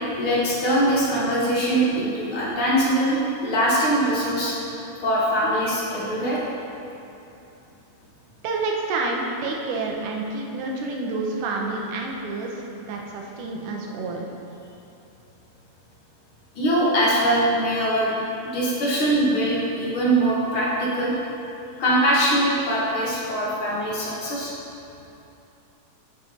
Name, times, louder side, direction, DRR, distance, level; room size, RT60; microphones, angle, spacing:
voice 1, 0.2-4.5 5.0-6.4 16.5-18.2 18.5-21.1 21.8-24.5, right 1 dB, 50° left, -6 dB, 1.7 m, -22 dB
voice 2, 8.4-12.5 12.9-14.3, right 3 dB, 75° right, 0 dB, 2.3 m, -28 dB
9.6 x 7.5 x 2.9 m, 2.9 s
omnidirectional pair, 3.9 m